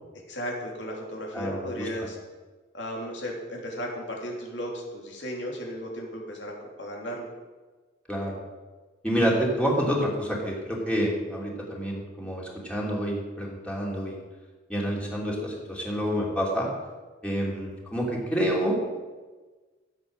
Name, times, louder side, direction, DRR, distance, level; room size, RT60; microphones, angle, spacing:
voice 1, 0.3-2.2 2.7-7.3, equal, 70° left, 0 dB, 3.1 m, -35 dB
voice 2, 1.3-1.9 8.1-8.4 9.0-14.2 14.7-16.7 17.2-18.8, equal, 5° left, -3 dB, 3.0 m, -28 dB
14.5 x 8.1 x 6.6 m, 1.3 s
head